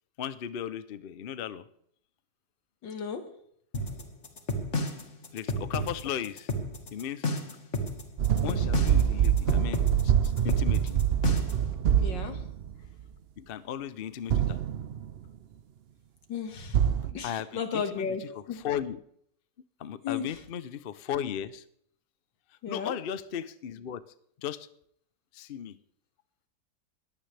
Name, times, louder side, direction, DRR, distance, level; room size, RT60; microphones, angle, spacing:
voice 1, 0.2-1.6 5.3-6.5 6.9-7.3 8.4-11.0 13.4-14.6 17.2-19.0 19.8-21.6 22.7-24.0 24.4-24.7 25.3-25.8, left 9 dB, 65° left, 14 dB, 0.5 m, -36 dB
voice 2, 2.8-3.2 12.0-12.4 16.3-16.8 17.0-18.6 20.0-20.3 22.6-22.9, left 6 dB, 85° left, 6 dB, 2.4 m, -34 dB
sound 1, 3.7-11.7, left 1 dB, 40° left, 2.0 m, -32 dB
sound 2, 8.2-12.9 14.3-15.2 16.7-17.1, right 9 dB, 90° right, 0.5 m, -25 dB
20.5 x 15.5 x 3.4 m, 0.67 s
omnidirectional pair, 1.9 m